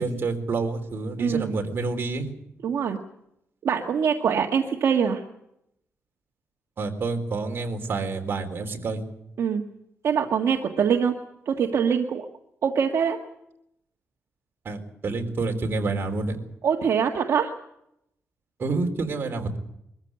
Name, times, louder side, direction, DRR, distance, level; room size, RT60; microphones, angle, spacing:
voice 1, 0.0-2.3 6.8-9.0 14.6-16.4 18.6-19.6, right 3 dB, 45° right, 3 dB, 3.9 m, -28 dB
voice 2, 1.2-1.5 2.6-3.0 3.6-5.2 9.4-9.6 10.0-11.2 11.5-12.3 12.6-13.2 16.6-17.5, right 7 dB, 70° right, 2 dB, 1.7 m, -23 dB
23.0 x 14.5 x 9.8 m, 0.80 s
wide cardioid pair, 140°, 5 cm